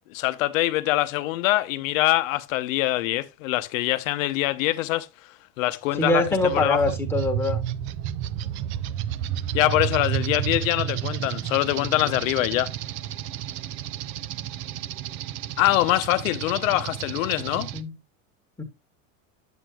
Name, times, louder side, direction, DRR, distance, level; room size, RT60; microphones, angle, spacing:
voice 1, 0.1-5.1 5.6-6.8 9.5-12.7 15.6-17.7, left 17 dB, 75° left, 0.8 m, -24 dB
voice 2, 5.9-7.6 11.7-12.2 17.5-17.9 18.6-18.7, left 2 dB, 5° left, 1.3 m, -25 dB
sound 1, 5.9-17.8, right 11 dB, 35° right, 0.4 m, -31 dB
9.0 x 8.1 x 2.3 m
supercardioid pair, 155°, 40 cm